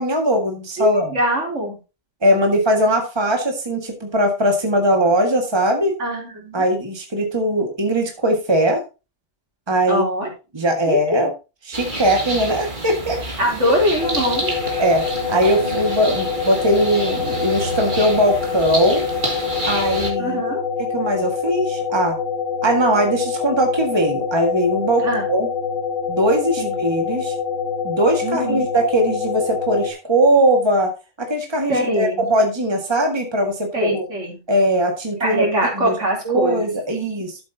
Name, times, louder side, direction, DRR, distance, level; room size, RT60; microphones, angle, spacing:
voice 1, 0.0-1.1 2.2-5.9 6.5-8.8 9.7-10.0 10.5-11.3 11.7-13.2 14.8-19.0 19.6-20.4 20.8-22.2 22.6-25.5 26.1-27.3 27.8-30.9 31.2-34.0 34.5-35.5 35.7-35.9 36.2-37.4, right 1 dB, 20° right, 2 dB, 1.8 m, -20 dB
voice 2, 0.8-1.8 6.0-6.6 9.9-10.3 10.9-11.2 13.4-14.6 20.2-20.6 25.0-25.3 26.6-26.7 28.2-28.7 31.7-32.2 33.7-34.4 35.2-36.7 37.0-37.3, equal, 65° right, 0 dB, 3.9 m, -22 dB
sound 1, 11.7-20.1, right 1 dB, 40° right, 2.4 m, -29 dB
sound 2, 14.0-29.9, left 6 dB, 80° left, 3.7 m, -25 dB
12.0 x 7.9 x 2.8 m, 0.29 s
omnidirectional pair, 1.3 m